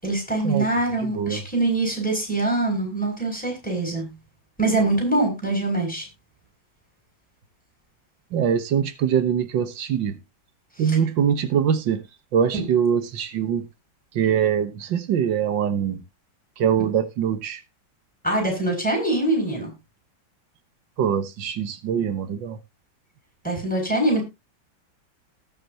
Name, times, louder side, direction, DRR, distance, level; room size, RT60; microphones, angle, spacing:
voice 1, 0.0-4.1 4.6-6.0 10.9-11.0 12.5-12.6 18.2-19.7 23.4-24.2, right 2 dB, 5° left, 7.3 m, -23 dB
voice 2, 1.0-1.4 8.3-10.2 10.8-12.0 12.3-13.7 14.1-16.0 16.6-17.6 21.0-22.6, right 8 dB, 90° right, 1.8 m, -23 dB
19.0 x 6.7 x 2.8 m
omnidirectional pair, 2.0 m